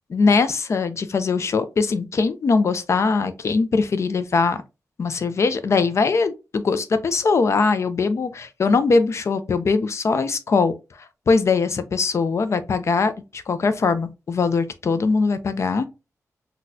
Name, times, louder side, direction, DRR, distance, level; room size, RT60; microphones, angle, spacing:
voice 1, 0.1-4.6 5.0-10.7 11.3-15.9, left 4 dB, 55° left, 0.4 m, -21 dB
4.1 x 2.2 x 2.6 m
wide cardioid pair, 145°, 6 cm